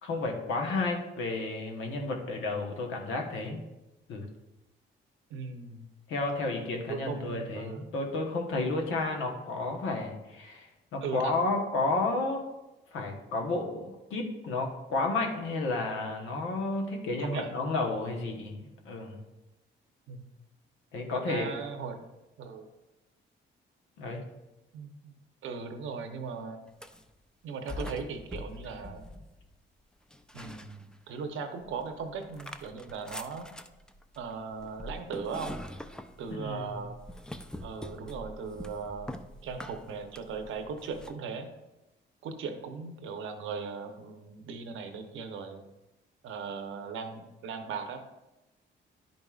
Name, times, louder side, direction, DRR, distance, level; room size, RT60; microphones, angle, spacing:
voice 1, 0.0-3.6 4.1-4.2 6.1-12.4 12.9-19.2 20.9-21.6 24.0-24.2 36.3-36.8, left 3 dB, 85° left, 1 dB, 1.1 m, -32 dB
voice 2, 5.3-5.9 6.9-7.9 11.0-11.3 17.2-17.5 20.1-20.3 21.1-22.0 22.4-22.7 24.7-25.2 25.4-26.6 27.4-29.1 30.3-33.5 34.2-35.6 36.2-36.9 37.6-39.1 39.4-41.5 42.2-45.6 46.2-48.0, right 5 dB, 80° right, 6 dB, 0.9 m, -38 dB
sound 1, 26.7-27.1 27.7-29.6 30.1-31.2 31.6-41.2, left 1 dB, 5° left, 0.4 m, -44 dB
10.5 x 5.3 x 2.4 m, 1.0 s
cardioid pair, 90°, 20 cm